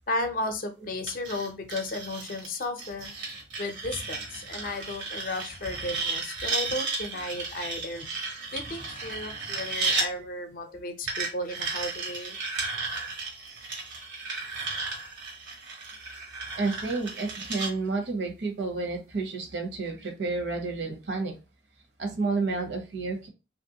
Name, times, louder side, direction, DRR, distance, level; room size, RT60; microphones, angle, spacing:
voice 1, 0.0-3.2 3.6-12.4, left 2 dB, 50° left, 6 dB, 0.5 m, -34 dB
sound 1, 1.1-10.1 11.1-17.7, right 3 dB, 85° right, 1.2 m, -34 dB
voice 2, 16.5-21.4 22.0-23.3, right 3 dB, 70° right, 4 dB, 0.9 m, -30 dB
2.9 x 2.5 x 2.7 m, 0.29 s
head